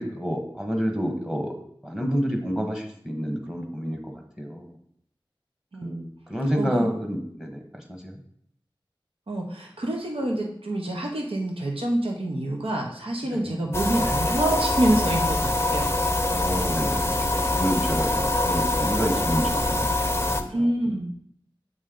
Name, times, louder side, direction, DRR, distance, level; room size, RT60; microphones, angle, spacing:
voice 1, 0.0-1.5 1.8-4.7 5.8-8.2 13.3-13.6 16.3-19.9 20.3-20.7, equal, 5° right, 3 dB, 1.2 m, -29 dB
voice 2, 5.7-6.1 6.5-6.9 9.3-15.9 20.5-21.1, right 1 dB, 85° right, 0 dB, 0.8 m, -27 dB
sound 1, 13.7-20.4, left 2 dB, 25° left, 0.6 m, -24 dB
7.9 x 3.2 x 3.7 m, 0.67 s
wide cardioid pair, 40°, 9 cm